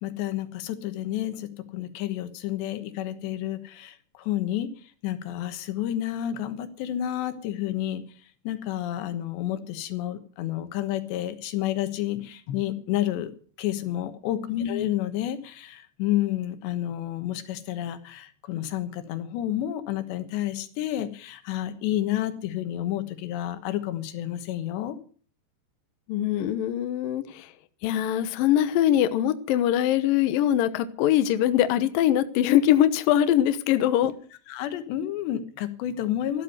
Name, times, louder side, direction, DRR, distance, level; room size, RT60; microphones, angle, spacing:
voice 1, 0.0-4.7 5.0-8.0 8.4-13.3 13.6-14.4 14.6-25.0 34.5-36.4, left 12 dB, 85° left, 11 dB, 3.5 m, -30 dB
voice 2, 14.5-14.9 26.1-27.5 27.8-34.1, left 11 dB, 70° left, 11 dB, 2.4 m, -22 dB
14.0 x 12.0 x 6.7 m, 0.43 s
omnidirectional pair, 4.9 m